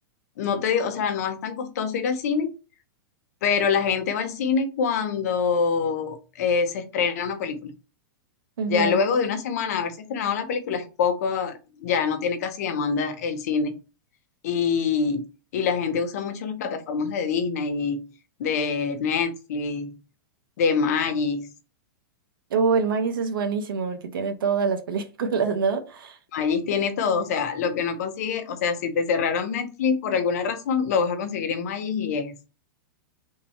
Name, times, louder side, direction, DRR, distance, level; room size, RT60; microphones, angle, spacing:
voice 1, 0.4-2.5 3.4-7.7 8.7-13.8 14.4-15.2 15.5-18.1 18.4-20.0 20.6-21.5 26.3-32.5, left 6 dB, 45° left, 0.7 m, -25 dB
voice 2, 8.6-9.0 22.5-26.2, right 5 dB, 75° right, 0.9 m, -25 dB
3.7 x 2.8 x 4.4 m
supercardioid pair, 175°, 12 cm